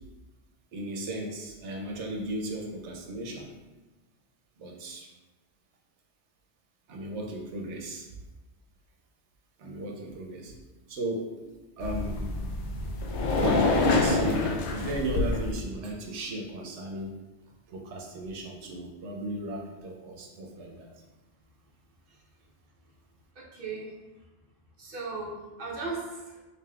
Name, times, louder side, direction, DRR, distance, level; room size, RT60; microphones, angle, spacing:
voice 1, 0.7-3.5 4.6-5.1 6.9-8.1 9.6-10.6 10.9-11.5 11.8-12.2 13.3-17.1 17.7-20.9, right 1 dB, 90° right, 1 dB, 1.0 m, -35 dB
sound 1, 11.8-15.5, left 3 dB, 85° left, 0.9 m, -27 dB
voice 2, 23.3-23.9 24.8-26.4, right 3 dB, 55° right, -4 dB, 0.9 m, -37 dB
5.1 x 2.7 x 2.3 m, 1.2 s
omnidirectional pair, 1.1 m